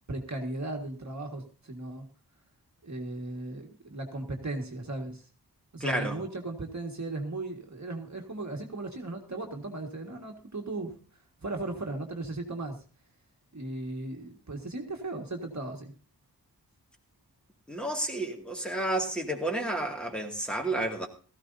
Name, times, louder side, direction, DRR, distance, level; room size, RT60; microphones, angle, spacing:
voice 1, 0.1-2.1 2.8-5.3 5.7-11.0 11.4-12.8 13.5-15.9, right 2 dB, 45° right, 2 dB, 1.8 m, -36 dB
voice 2, 5.8-6.2 17.7-21.1, right 1 dB, ahead, 0 dB, 2.2 m, -31 dB
16.5 x 14.5 x 2.7 m, 0.37 s
wide cardioid pair, 65°, 39 cm